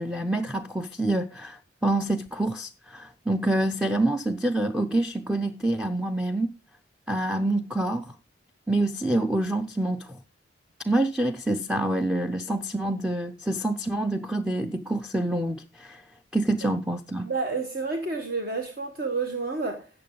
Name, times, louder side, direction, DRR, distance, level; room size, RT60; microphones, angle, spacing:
voice 1, 0.0-6.5 7.1-8.1 8.7-10.2 10.8-16.0 16.3-17.3, right 1 dB, 5° right, 0.5 m, -27 dB
voice 2, 17.2-19.9, right 4 dB, 45° right, 1.3 m, -30 dB
14.0 x 8.7 x 3.8 m
head